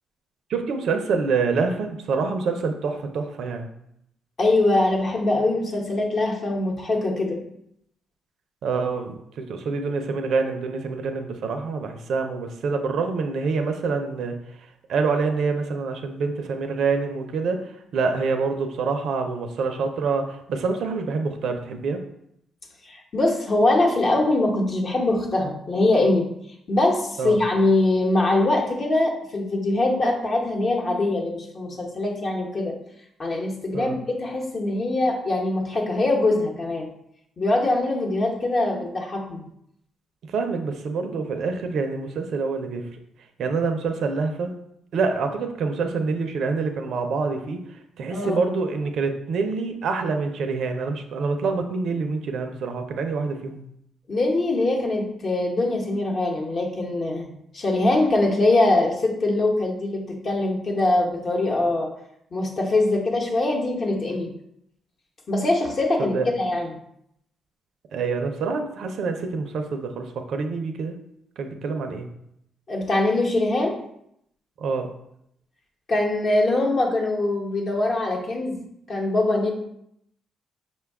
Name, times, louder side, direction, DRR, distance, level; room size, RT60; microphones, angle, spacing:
voice 1, 0.5-3.7 8.6-22.0 27.2-27.4 33.7-34.0 40.3-42.9 43.4-44.5 44.9-53.6 66.0-66.3 67.9-70.9 71.4-72.1 74.6-74.9, right 4 dB, 70° right, 5 dB, 0.4 m, -26 dB
voice 2, 4.4-7.4 22.8-26.3 26.7-32.7 33.2-36.9 37.4-39.5 48.1-48.4 54.1-61.9 62.3-64.3 65.3-66.7 72.7-73.8 75.9-78.6 78.9-79.5, left 2 dB, 45° left, 0 dB, 0.9 m, -23 dB
5.4 x 2.2 x 3.4 m, 0.75 s
cardioid pair, 90°, 0 cm